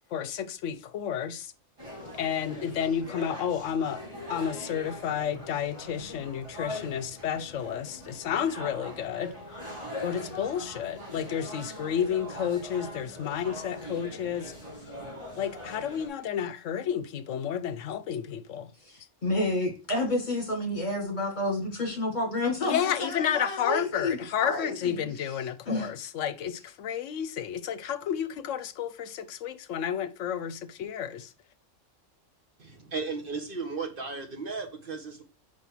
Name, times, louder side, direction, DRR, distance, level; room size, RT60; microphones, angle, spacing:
voice 1, 0.0-1.5 2.2-4.0 4.3-9.3 10.0-14.5 15.4-18.7 22.6-31.3, left 9 dB, 75° left, 1.0 m, -31 dB
sound 1, 1.8-16.1, left 1 dB, 25° right, 3.5 m, -42 dB
voice 2, 18.8-25.0 25.7-25.9, left 2 dB, 35° left, 2.1 m, -30 dB
voice 3, 32.6-35.2, right 4 dB, 45° right, 1.4 m, -35 dB
5.4 x 4.9 x 4.5 m
omnidirectional pair, 1.3 m